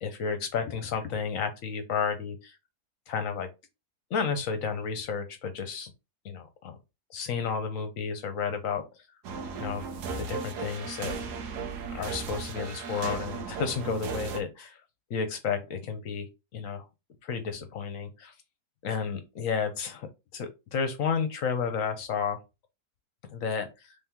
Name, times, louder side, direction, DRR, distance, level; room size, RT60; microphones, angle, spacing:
voice 1, 0.0-2.6 3.1-3.5 4.1-5.9 6.2-6.8 7.1-8.8 9.6-9.9 10.2-11.1 11.9-14.8 15.1-16.8 17.2-18.3 18.8-22.4 23.3-23.9, left 6 dB, 65° left, 1.0 m, -32 dB
sound 1, 9.2-14.4, right 4 dB, 85° right, 1.3 m, -36 dB
3.3 x 2.9 x 3.5 m
omnidirectional pair, 1.7 m